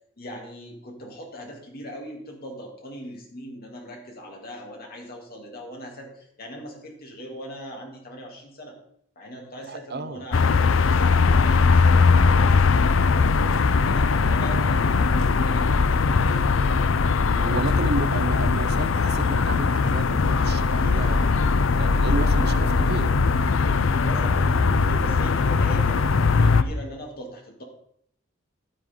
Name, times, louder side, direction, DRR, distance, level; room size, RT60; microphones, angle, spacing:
voice 1, 0.2-8.8 9.2-12.8 13.1-16.4 17.4-18.2 20.8-21.0 22.0-22.5 24.0-27.6, equal, 50° left, 0 dB, 2.9 m, -40 dB
voice 2, 9.7-10.2 17.3-21.2 21.7-23.1, right 3 dB, 55° right, 11 dB, 0.7 m, -32 dB
sound 1, 10.3-26.6, left 4 dB, 80° left, 0.6 m, -20 dB
12.0 x 9.5 x 3.8 m, 0.68 s
head